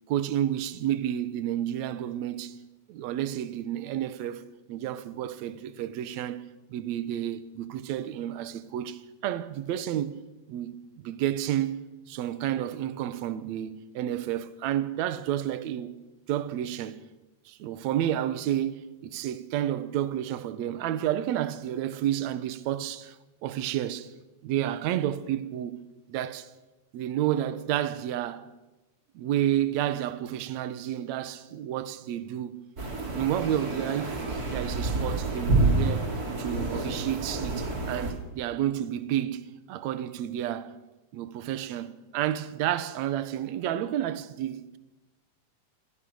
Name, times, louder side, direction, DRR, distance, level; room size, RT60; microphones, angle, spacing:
voice 1, 0.1-2.6 2.9-10.2 10.5-10.8 11.0-11.7 12.1-16.0 16.3-17.0 17.5-23.2 23.4-24.1 24.4-25.8 26.1-26.5 26.9-28.5 29.1-32.6 33.1-36.1 36.4-40.8 41.1-44.8, right 11 dB, 65° right, 2.0 m, -30 dB
sound 1, 32.8-38.1, right 2 dB, 25° right, 3.1 m, -28 dB
24.5 x 17.0 x 6.4 m
omnidirectional pair, 4.0 m